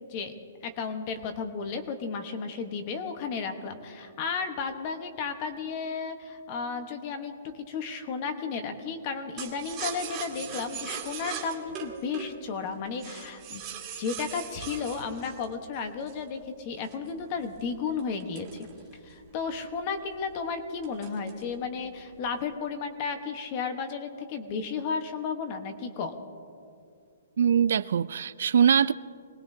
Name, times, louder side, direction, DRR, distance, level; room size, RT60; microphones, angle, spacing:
voice 1, 0.6-13.6 14.0-18.7 19.0-26.1, left 5 dB, 25° left, 7 dB, 1.1 m, -33 dB
sound 1, 9.4-16.3 16.8-19.3 19.7-19.8 20.1-20.4 20.8-21.5 21.9-22.4, right 8 dB, 15° right, 1.9 m, -40 dB
voice 2, 27.4-28.9, right 8 dB, 60° right, 16 dB, 0.3 m, -22 dB
26.0 x 20.0 x 2.7 m, 2.5 s
hypercardioid pair, 175°, 0 cm